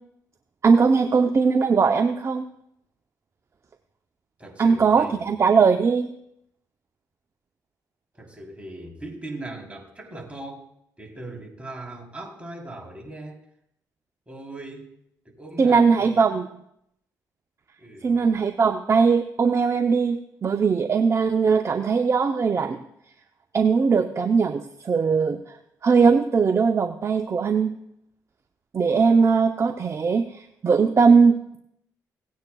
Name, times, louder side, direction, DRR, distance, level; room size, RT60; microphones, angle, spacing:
voice 1, 0.6-2.4 4.6-6.1 15.6-16.4 18.0-22.8 23.5-25.4 25.8-27.7 28.7-31.6, right 5 dB, 40° right, 7 dB, 0.7 m, -20 dB
voice 2, 4.4-5.2 8.1-10.6 11.0-13.4 14.3-14.9 15.3-16.2 17.8-18.2, right 2 dB, 15° right, 0 dB, 3.6 m, -39 dB
17.5 x 9.4 x 2.4 m, 0.73 s
supercardioid pair, 55°, 8 cm